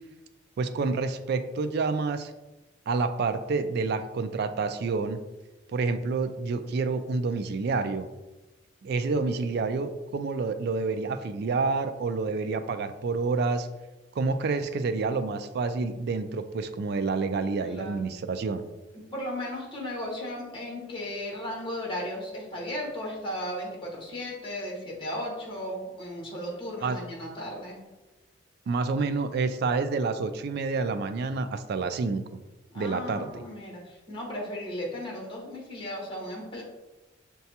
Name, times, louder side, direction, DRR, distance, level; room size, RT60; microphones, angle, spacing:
voice 1, 0.6-2.3 2.9-5.2 5.7-8.1 8.8-13.7 14.2-18.6 26.8-27.0 28.7-32.2 32.8-33.4, right 4 dB, 55° right, 9 dB, 0.3 m, -28 dB
voice 2, 17.6-18.2 18.9-27.8 32.7-36.6, left 1 dB, 25° left, -3 dB, 1.2 m, -36 dB
6.5 x 2.3 x 2.8 m, 1.1 s
head